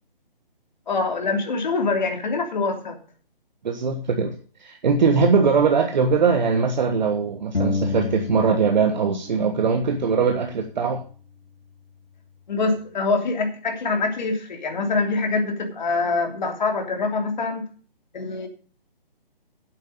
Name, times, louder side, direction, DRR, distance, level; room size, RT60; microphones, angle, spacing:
voice 1, 0.9-2.9 12.5-17.6 18.1-18.5, left 3 dB, 50° left, 3 dB, 3.1 m, -24 dB
voice 2, 3.6-4.3 4.6-11.0, right 5 dB, 50° right, 4 dB, 1.4 m, -21 dB
sound 1, 7.5-9.1 9.3-11.1, left 3 dB, 90° left, 1.8 m, -31 dB
9.0 x 8.3 x 6.6 m, 0.42 s
figure-of-eight pair, 145°, 29 cm